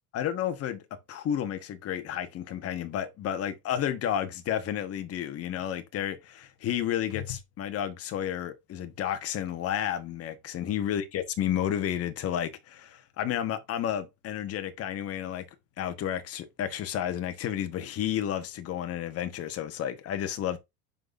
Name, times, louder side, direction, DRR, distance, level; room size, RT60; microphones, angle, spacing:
voice 1, 0.1-15.4 15.8-20.6, left 10 dB, 35° left, 1.2 m, -31 dB
10.5 x 4.0 x 2.7 m
cardioid pair, 145°, 39 cm